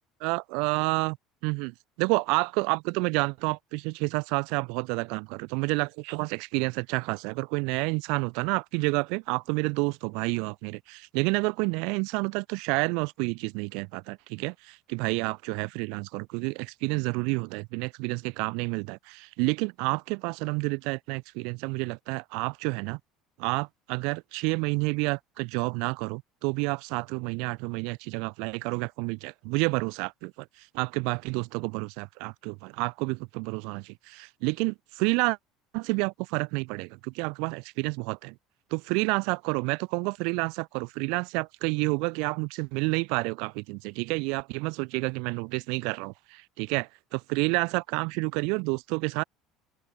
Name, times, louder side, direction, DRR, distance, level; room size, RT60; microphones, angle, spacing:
voice 1, 0.2-1.2 1.4-23.0 23.4-35.4 35.7-38.3 38.7-49.2, right 32 dB, 60° right, 0.7 m, -29 dB
open air
figure-of-eight pair, 65°, 0 cm